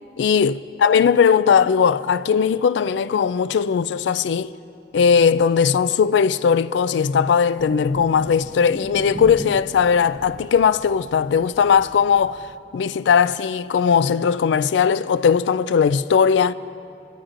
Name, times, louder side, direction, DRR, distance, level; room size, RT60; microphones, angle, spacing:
voice 1, 0.2-4.5 4.9-16.5, left 6 dB, 80° left, 0.3 m, -18 dB
Thunder, 7.6-12.6, equal, ahead, 0.5 m, -39 dB
21.5 x 13.0 x 2.5 m
head